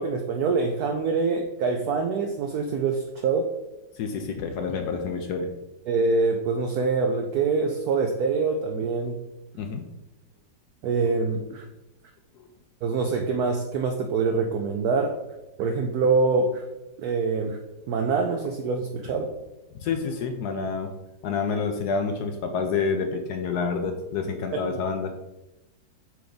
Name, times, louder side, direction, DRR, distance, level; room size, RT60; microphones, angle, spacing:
voice 1, 0.0-3.5 5.9-9.2 10.8-11.6 12.8-15.2 15.6-16.6 17.0-17.6 17.9-19.3 24.5-24.7, right 4 dB, 75° right, 4 dB, 0.9 m, -25 dB
voice 2, 3.9-5.5 9.6-9.9 12.4-12.5 19.8-20.9 21.2-25.1, left 5 dB, 70° left, 5 dB, 1.0 m, -28 dB
7.5 x 3.5 x 3.9 m, 0.96 s
omnidirectional pair, 2.1 m